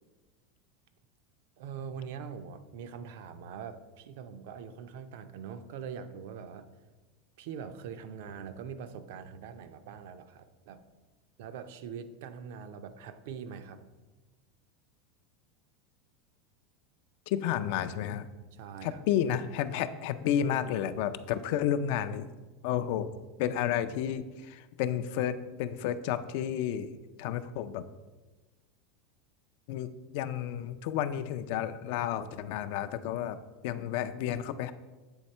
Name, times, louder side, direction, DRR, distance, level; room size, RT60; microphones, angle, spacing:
voice 1, 1.6-6.7 7.4-10.8 11.4-13.9 18.5-19.0, right 7 dB, 65° right, 10 dB, 0.5 m, -43 dB
voice 2, 17.3-18.3 18.8-22.3 22.6-23.1 23.4-26.9 27.2-27.9 29.7-34.7, left 10 dB, 55° left, 12 dB, 0.3 m, -31 dB
8.0 x 3.6 x 4.3 m, 1.2 s
supercardioid pair, 165°, 0 cm